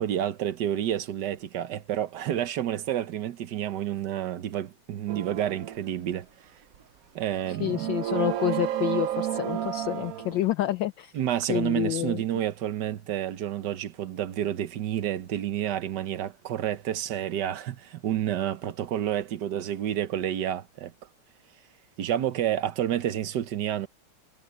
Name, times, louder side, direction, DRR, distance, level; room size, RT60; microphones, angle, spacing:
voice 1, 0.0-6.3 7.1-7.9 11.1-20.9 22.0-23.9, right 11 dB, 60° right, 1.3 m, -29 dB
sound 1, 5.1-5.8 6.7-6.8 7.3-10.5, right 11 dB, 75° right, 0.8 m, -31 dB
voice 2, 7.5-11.1 11.5-12.2, left 14 dB, 70° left, 1.2 m, -28 dB
omnidirectional pair, 2.4 m